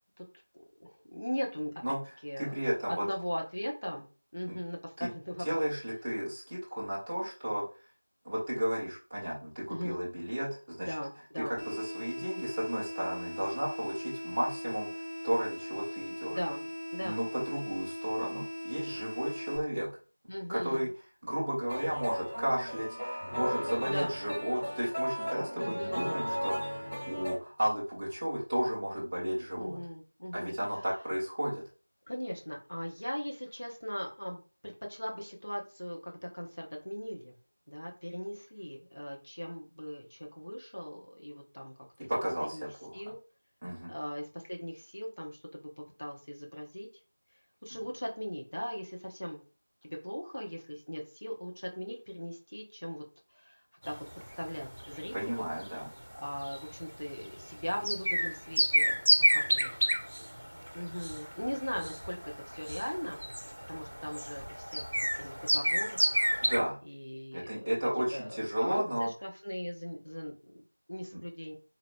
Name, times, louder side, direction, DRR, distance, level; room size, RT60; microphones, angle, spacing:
voice 1, 0.8-2.0 2.2-2.5 2.9-4.1 4.3-5.7 9.7-10.0 10.8-11.6 16.3-17.3 20.3-20.9 23.8-24.1 25.6-26.1 29.5-30.6 32.1-37.3 37.7-42.1 42.4-42.6 42.9-43.2 43.9-46.9 47.6-49.4 49.8-53.0 53.3-53.9 54.4-55.9 56.1-59.0 59.3-59.7 60.7-63.2 63.7-66.0 66.3-66.5 66.8-67.7 68.1-71.6, equal, 40° left, 0 dB, 0.8 m, -39 dB
voice 2, 2.4-3.0 4.5-4.6 5.0-5.1 5.4-7.6 8.2-10.9 11.6-14.9 15.2-16.4 17.0-19.9 20.5-20.9 21.2-26.8 27.1-29.8 30.3-31.6 42.1-42.6 42.8-42.9 43.6-43.9 55.1-55.9 66.4-66.8 67.3-69.1, equal, 5° right, -8 dB, 0.4 m, -33 dB
sound 1, 11.6-19.6, equal, 60° left, 1.6 m, -40 dB
sound 2, 21.7-27.3, equal, 15° left, 1.2 m, -35 dB
sound 3, 53.8-66.6, equal, 50° right, 0.7 m, -31 dB
4.0 x 2.8 x 2.2 m, 0.35 s
figure-of-eight pair, 180°, 0 cm